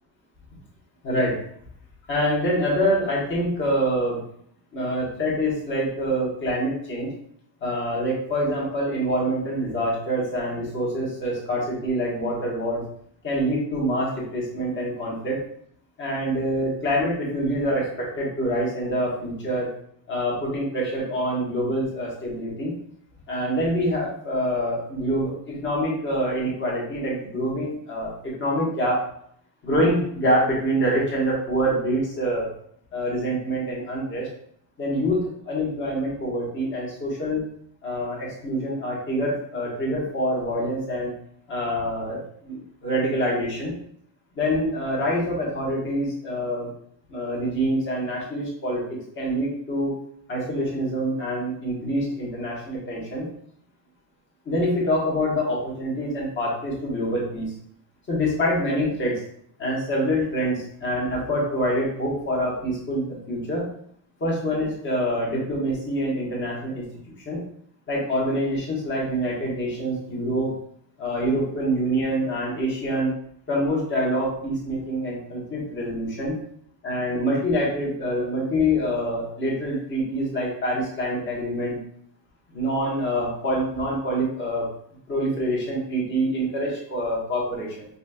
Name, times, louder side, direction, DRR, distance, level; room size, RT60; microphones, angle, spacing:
voice 1, 1.0-1.4 2.1-4.2 4.7-7.1 7.6-12.8 13.2-15.4 16.0-19.7 20.1-22.7 23.3-29.0 29.6-32.5 32.9-34.3 34.8-37.4 37.8-41.1 41.5-43.7 44.3-46.7 47.1-48.8 49.1-49.9 50.3-53.3 54.4-57.5 58.1-59.2 59.6-63.7 64.2-66.8 67.2-67.4 67.9-70.5 71.0-73.1 73.5-76.3 76.8-81.8 82.5-84.7 85.1-87.9, equal, 25° left, -4 dB, 1.3 m, -25 dB
5.1 x 2.6 x 2.3 m, 0.66 s
cardioid pair, 160°, 44 cm